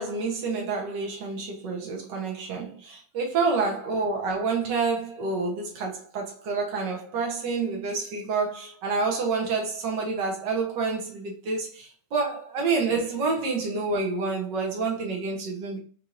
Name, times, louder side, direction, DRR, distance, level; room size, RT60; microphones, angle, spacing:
voice 1, 0.0-15.8, right 4 dB, 80° right, 0.9 m, -28 dB
5.3 x 3.2 x 2.5 m
omnidirectional pair, 3.4 m